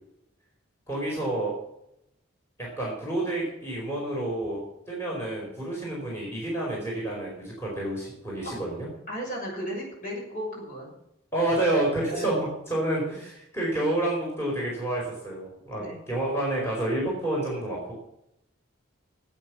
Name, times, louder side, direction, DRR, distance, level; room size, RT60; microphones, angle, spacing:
voice 1, 0.9-1.5 2.8-8.9 11.3-17.9, right 1 dB, 15° left, -4 dB, 4.7 m, -29 dB
voice 2, 9.1-10.9 12.1-12.3 13.1-13.2 15.7-16.0, equal, 40° left, -2 dB, 6.5 m, -35 dB
16.5 x 8.9 x 6.3 m, 0.82 s
head